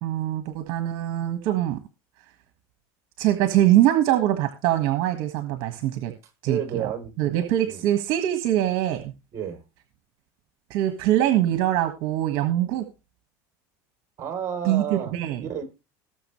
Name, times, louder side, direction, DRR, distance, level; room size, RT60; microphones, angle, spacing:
voice 1, 0.0-1.8 3.2-6.1 6.4-6.9 7.2-9.1 10.7-12.9 14.6-15.4, right 13 dB, 60° right, 8 dB, 1.7 m, -23 dB
voice 2, 6.5-7.4 7.7-7.8 9.3-9.6 14.2-15.1 15.4-15.6, right 8 dB, 35° right, 6 dB, 3.6 m, -31 dB
19.5 x 7.0 x 3.2 m, 0.29 s
cardioid pair, 145°, 9 cm